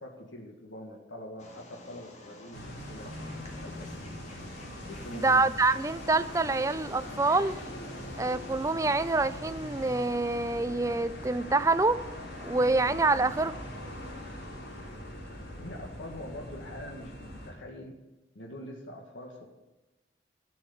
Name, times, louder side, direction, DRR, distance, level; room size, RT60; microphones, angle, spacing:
voice 1, 0.0-4.2 4.9-5.5 15.5-18.0 18.3-19.5, left 1 dB, 90° left, 1 dB, 1.8 m, -44 dB
Wild animals, 1.4-10.1, left 2 dB, 35° left, 1.9 m, -50 dB
sound 1, 2.5-17.5, left 1 dB, 75° left, 3.7 m, -42 dB
voice 2, 5.1-7.5 8.2-12.0 12.4-13.6, right 3 dB, 15° right, 13 dB, 0.4 m, -26 dB
13.0 x 6.4 x 7.8 m, 1.0 s
head